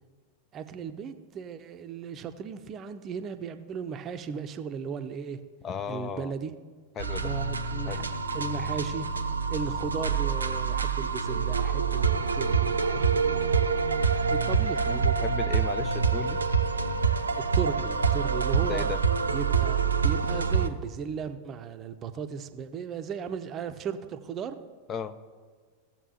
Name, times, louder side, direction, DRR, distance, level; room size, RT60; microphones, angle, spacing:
voice 1, 0.5-5.4 5.9-6.5 7.2-9.1 9.5-13.6 14.3-15.3 17.5-18.9 19.3-24.6, right 6 dB, 30° right, 0.6 m, -36 dB
voice 2, 5.6-6.3 7.0-7.3 7.9-8.0 14.9-16.4 18.7-19.0 24.9-25.1, left 6 dB, 25° left, 0.5 m, -35 dB
sound 1, 7.0-20.7, right 5 dB, 75° right, 0.6 m, -26 dB
17.0 x 7.3 x 2.8 m
figure-of-eight pair, 90°, 0 cm